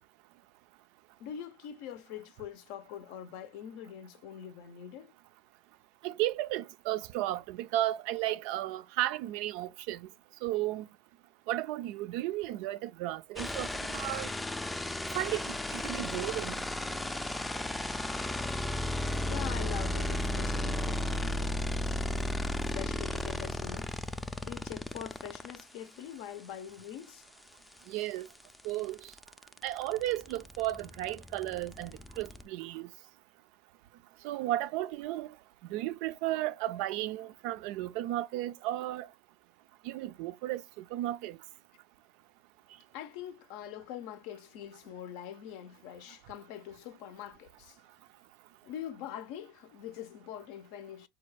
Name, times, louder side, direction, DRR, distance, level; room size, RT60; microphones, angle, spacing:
voice 1, 1.2-5.1 19.3-21.6 22.6-23.9 24.4-27.2 42.9-47.8 48.6-51.1, left 10 dB, 70° left, 0.5 m, -44 dB
voice 2, 6.0-10.1 10.4-10.9 11.5-14.3 15.1-16.6 27.9-28.3 28.6-29.0 29.6-31.9 32.2-32.9 34.2-35.3 35.7-39.1 39.8-41.4, right 15 dB, 70° right, 0.3 m, -34 dB
sound 1, 13.4-25.6 27.7-27.8 28.1-32.4, left 1 dB, 5° left, 0.3 m, -34 dB
4.2 x 2.3 x 3.2 m
supercardioid pair, 115°, 0 cm